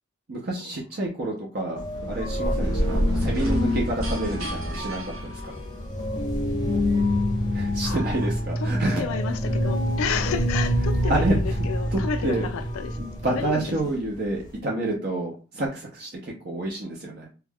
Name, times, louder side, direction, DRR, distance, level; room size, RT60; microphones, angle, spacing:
voice 1, 0.3-1.8 2.1-5.4 7.5-9.0 11.1-11.3 11.9-12.5 13.0-17.3, right 2 dB, 45° right, 0.6 m, -28 dB
sound 1, 1.8-14.6, left 1 dB, 20° left, 0.6 m, -28 dB
sound 2, 1.9-5.9, equal, 75° right, 0.8 m, -29 dB
sound 3, 5.9-13.7, right 1 dB, 20° right, 0.9 m, -30 dB
voice 2, 7.8-8.3 8.6-13.0 13.3-14.0, left 6 dB, 80° left, 0.3 m, -32 dB
2.4 x 2.2 x 3.4 m
head